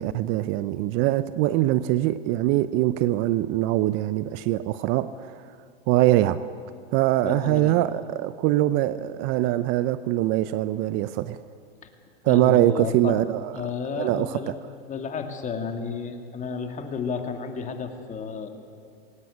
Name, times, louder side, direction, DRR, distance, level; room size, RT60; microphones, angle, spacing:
voice 1, 0.0-5.4 5.9-6.4 6.9-11.4 12.2-13.6 14.0-14.5, right 15 dB, 40° right, 15 dB, 0.7 m, -23 dB
voice 2, 7.2-7.8 12.3-13.2 13.5-14.6 14.9-18.5, left 5 dB, 25° left, 5 dB, 2.4 m, -32 dB
20.5 x 18.5 x 8.8 m, 2.4 s
hypercardioid pair, 110°, 31 cm